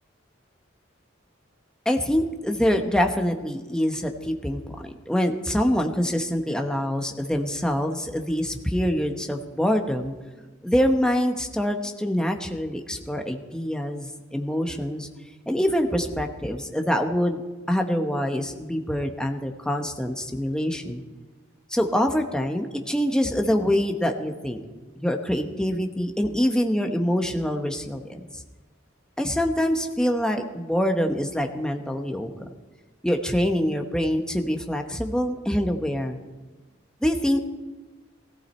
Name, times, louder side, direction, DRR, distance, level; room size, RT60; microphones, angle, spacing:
voice 1, 1.8-10.1 10.6-15.1 15.5-17.4 17.7-21.0 21.7-24.6 25.0-28.2 29.2-32.5 33.0-36.2 37.0-37.4, equal, 5° left, 4 dB, 1.0 m, -25 dB
17.0 x 15.0 x 4.3 m, 1.2 s
head